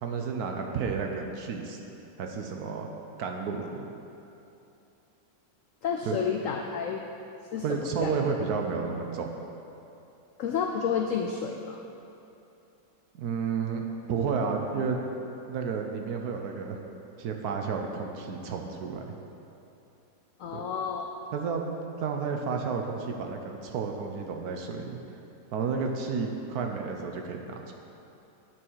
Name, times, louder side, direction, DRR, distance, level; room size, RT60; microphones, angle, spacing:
voice 1, 0.0-1.8 2.2-2.9 3.2-3.9 6.1-6.2 7.6-9.3 13.1-13.8 14.1-15.0 15.5-16.8 17.2-19.2 20.5-20.6 21.3-21.6 22.0-25.0 25.5-27.7, right 5 dB, 65° right, 2 dB, 1.1 m, -31 dB
voice 2, 5.8-7.0 7.5-8.1 10.4-11.8 20.4-21.1, left 7 dB, 90° left, 2 dB, 0.7 m, -30 dB
9.0 x 6.4 x 4.6 m, 2.8 s
omnidirectional pair, 2.0 m